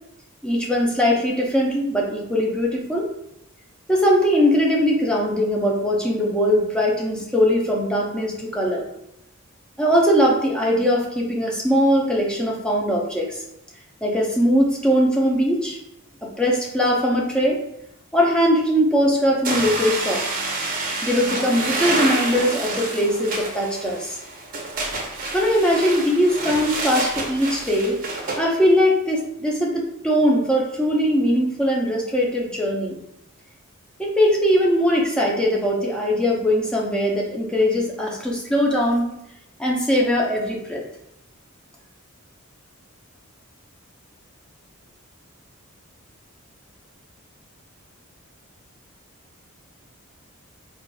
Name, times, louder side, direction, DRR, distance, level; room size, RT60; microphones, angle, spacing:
voice 1, 0.4-3.1 3.9-8.8 9.8-13.4 14.0-15.8 16.2-17.6 18.1-20.2 21.0-24.2 25.3-28.0 28.4-33.0 34.0-39.1 39.6-40.8, equal, 5° left, -3 dB, 0.6 m, -20 dB
sound 1, 19.5-28.4, right 2 dB, 40° right, 0.7 m, -28 dB
4.5 x 2.5 x 2.3 m, 0.80 s
head